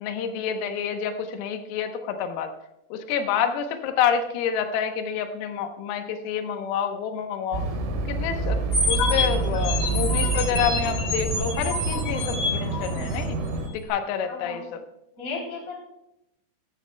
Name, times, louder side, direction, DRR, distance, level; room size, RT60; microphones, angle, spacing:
voice 1, 0.0-2.5 2.9-7.6 8.1-13.4 13.7-14.8, left 7 dB, 85° left, 6 dB, 3.7 m, -28 dB
sound 1, 7.5-13.7, right 3 dB, 75° right, 4.0 m, -27 dB
sound 2, 8.7-13.3, left 3 dB, 65° left, 1.8 m, -27 dB
voice 2, 14.3-14.6 15.2-15.7, left 4 dB, 20° left, 0 dB, 2.0 m, -34 dB
15.5 x 13.0 x 2.2 m, 0.85 s
omnidirectional pair, 5.9 m